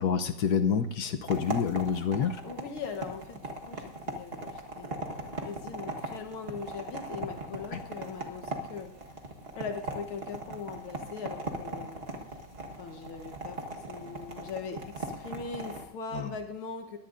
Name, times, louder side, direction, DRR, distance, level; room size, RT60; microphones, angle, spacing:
voice 1, 0.0-2.4 7.7-7.8 16.1-16.3, left 7 dB, 60° left, 8 dB, 1.1 m, -28 dB
sound 1, 1.3-15.9, right 2 dB, 35° right, 1.3 m, -39 dB
voice 2, 2.4-8.9 9.6-12.0 12.8-17.0, left 5 dB, 80° left, 4 dB, 2.0 m, -40 dB
22.0 x 16.5 x 2.6 m, 0.81 s
omnidirectional pair, 2.3 m